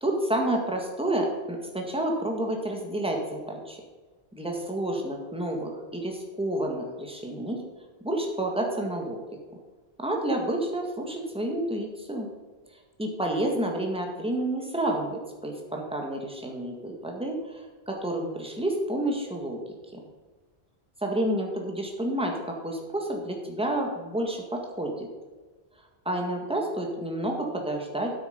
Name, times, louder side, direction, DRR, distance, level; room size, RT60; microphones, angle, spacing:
voice 1, 0.0-3.8 4.3-7.6 8.0-9.2 10.0-12.3 13.0-19.6 19.9-20.0 21.0-22.3 22.6-25.1 26.0-28.1, right 1 dB, 5° right, 1 dB, 1.7 m, -29 dB
9.5 x 8.4 x 5.2 m, 1.3 s
omnidirectional pair, 1.1 m